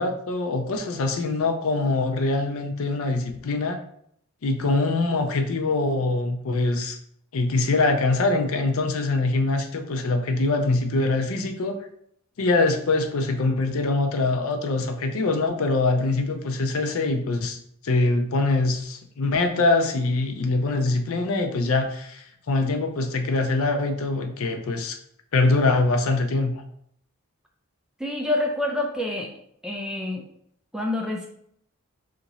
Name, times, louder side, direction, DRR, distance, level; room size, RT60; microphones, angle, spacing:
voice 1, 0.0-3.8 4.4-7.0 7.3-11.8 12.4-17.6 17.8-25.0 25.3-26.6, left 3 dB, 70° left, 5 dB, 0.5 m, -23 dB
voice 2, 28.0-29.3 29.6-30.2 30.7-31.3, left 2 dB, 5° right, 1 dB, 0.3 m, -27 dB
2.9 x 2.5 x 3.9 m, 0.68 s
head